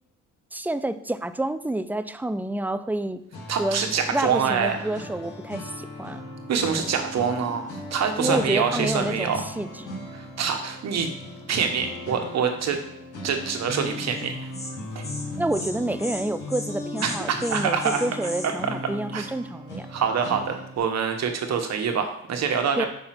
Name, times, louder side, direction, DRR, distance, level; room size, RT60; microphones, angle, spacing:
voice 1, 0.5-3.2 3.6-6.2 8.2-9.9 15.4-19.9 22.8-22.9, right 1 dB, 5° right, 11 dB, 0.4 m, -28 dB
sound 1, 3.3-20.8, left 2 dB, 75° left, 2.4 m, -37 dB
voice 2, 3.5-4.8 6.5-9.4 10.1-11.1 11.5-12.8 13.2-14.5 14.9-15.0 17.0-18.0 18.4-18.5 19.1-19.3 19.9-22.9, right 6 dB, 60° right, 5 dB, 1.3 m, -25 dB
Insect, 14.1-14.3 14.5-14.7 15.0-15.2 15.5-15.7 16.0-16.2 16.5-16.7 17.0-18.5, left 2 dB, 20° left, 1.7 m, -36 dB
5.6 x 4.4 x 5.9 m, 0.75 s
cardioid pair, 90°, 30 cm